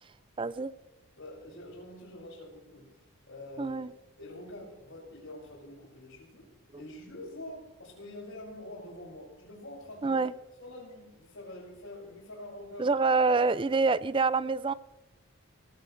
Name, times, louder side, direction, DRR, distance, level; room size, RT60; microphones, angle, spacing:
voice 1, 0.4-0.7 3.6-3.9 10.0-10.3 12.8-14.7, right 4 dB, 20° right, 17 dB, 0.4 m, -26 dB
voice 2, 1.2-3.8 4.2-6.5 6.8-10.2 10.6-13.0, left 1 dB, 65° left, -8 dB, 5.7 m, -46 dB
19.0 x 16.0 x 3.2 m, 1.1 s
head